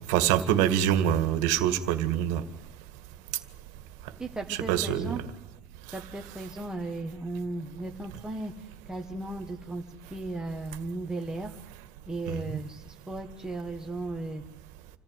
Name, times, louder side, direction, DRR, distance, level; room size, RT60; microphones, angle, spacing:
voice 1, 0.1-2.4 4.5-5.2 12.3-12.6, right 10 dB, 60° right, 1.9 m, -25 dB
voice 2, 4.2-5.2 5.9-9.8 10.1-11.5 12.1-14.4, right 2 dB, 5° right, 1.3 m, -36 dB
27.0 x 15.0 x 9.5 m
cardioid pair, 150°, 14 cm